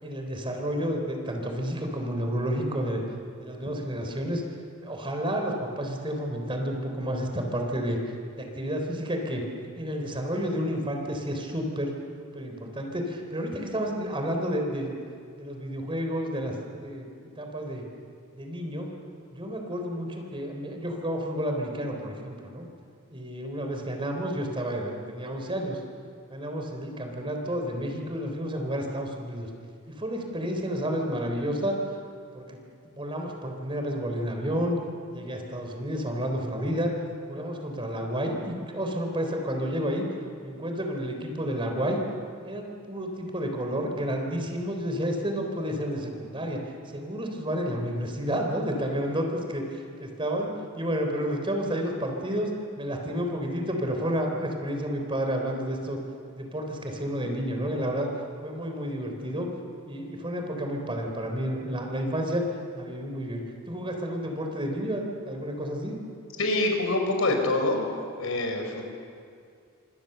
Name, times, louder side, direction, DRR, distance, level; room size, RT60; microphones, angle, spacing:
voice 1, 0.0-3.0 3.4-4.4 4.8-8.0 8.4-9.4 9.8-15.0 15.4-17.0 17.4-17.8 18.3-18.9 19.3-22.7 23.1-25.8 26.3-29.5 30.0-31.8 32.3-32.6 32.8-34.8 35.1-36.9 37.3-40.0 40.4-42.0 42.4-46.6 46.9-56.0 56.4-58.1 58.4-59.5 59.9-62.4 62.7-65.9, equal, 25° right, 2 dB, 3.8 m, -30 dB
voice 2, 66.4-67.8 68.1-68.9, left 2 dB, 80° left, 4 dB, 5.0 m, -25 dB
27.5 x 25.5 x 6.9 m, 2.3 s
head